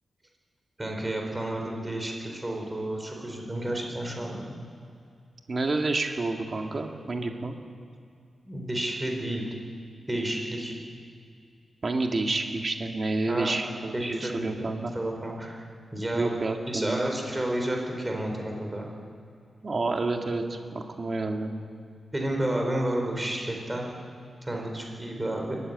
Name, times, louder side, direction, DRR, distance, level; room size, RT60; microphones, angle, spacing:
voice 1, 0.8-4.5 8.5-9.5 10.1-10.7 13.3-13.6 13.9-14.6 14.9-16.4 16.7-18.9 22.1-23.8 24.4-25.6, right 1 dB, 15° right, 1 dB, 4.3 m, -31 dB
voice 2, 5.5-7.5 11.8-14.9 16.1-17.0 19.6-21.5, right 3 dB, 35° right, 3 dB, 2.0 m, -29 dB
23.5 x 14.5 x 9.6 m, 2.3 s
wide cardioid pair, 160°, 0 cm